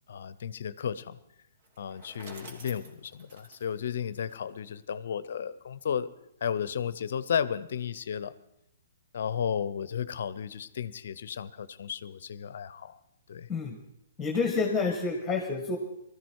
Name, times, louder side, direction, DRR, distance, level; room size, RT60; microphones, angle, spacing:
voice 1, 0.1-1.2 1.8-6.1 6.4-8.3 9.1-13.0 13.3-13.5, left 8 dB, 65° left, 17 dB, 0.7 m, -33 dB
Bicycle, 1.6-4.8, right 2 dB, 45° right, 2.9 m, -50 dB
voice 2, 14.2-15.8, left 4 dB, 15° left, 3 dB, 1.7 m, -28 dB
19.5 x 13.5 x 4.7 m, 0.82 s
hypercardioid pair, 125°, 0 cm